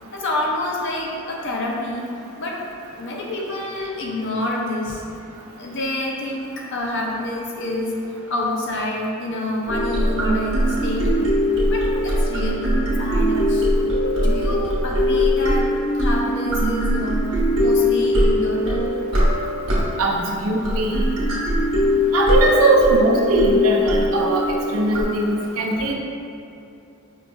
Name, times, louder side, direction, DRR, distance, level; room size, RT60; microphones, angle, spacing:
voice 1, 0.1-2.0 2.4-2.6 2.9-5.0 5.6-8.0 8.3-11.3 11.7-13.7 14.1-18.9, left 1 dB, 55° left, -2 dB, 0.6 m, -27 dB
sound 1, 9.7-25.0, equal, 60° right, 1.0 m, -21 dB
voice 2, 20.0-21.0 22.1-25.9, right 2 dB, 75° right, 0 dB, 0.5 m, -20 dB
5.4 x 2.6 x 2.3 m, 2.6 s
head